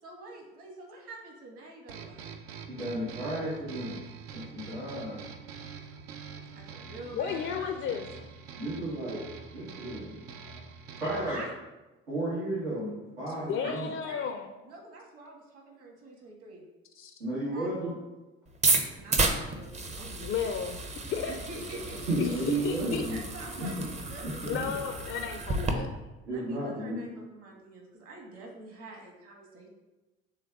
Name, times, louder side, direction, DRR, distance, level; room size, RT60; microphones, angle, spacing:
voice 1, 0.0-2.3 6.5-7.8 11.3-11.5 13.3-14.3 14.6-16.7 17.5-17.7 18.9-20.2 21.3-22.7 23.1-24.5 26.3-29.7, right 2 dB, 50° right, 0 dB, 1.4 m, -46 dB
sound 1, 1.9-11.5, right 6 dB, 70° right, 0.5 m, -45 dB
voice 2, 2.7-4.0 4.3-5.2 8.6-9.2 9.5-10.2 11.0-11.4 12.1-12.9 13.2-13.9 17.2-18.0 22.1-23.2 23.6-23.7 24.2-24.6 26.3-27.0, right 1 dB, 85° right, -9 dB, 1.3 m, -33 dB
voice 3, 7.1-8.1 13.5-14.5 17.0-17.1 20.2-20.8 21.1-21.4 22.2-23.0 24.5-25.9, left 7 dB, 40° left, 5 dB, 0.4 m, -33 dB
sound 2, 18.5-25.7, right 3 dB, 20° right, 0.6 m, -32 dB
6.4 x 3.4 x 2.3 m, 1.1 s
figure-of-eight pair, 55°, 31 cm